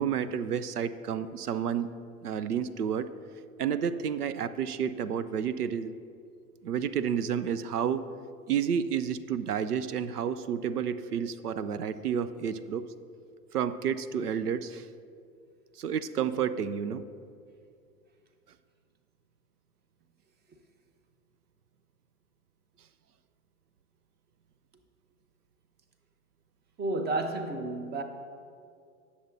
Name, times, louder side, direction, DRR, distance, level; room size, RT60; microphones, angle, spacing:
voice 1, 0.0-1.9 2.2-3.1 3.6-5.9 6.6-8.0 8.5-12.8 13.5-14.9 15.8-17.0, right 8 dB, 85° right, 0.5 m, -30 dB
voice 2, 26.8-28.0, right 2 dB, 20° right, 0.9 m, -31 dB
18.5 x 7.0 x 2.6 m
figure-of-eight pair, 90°, 45 cm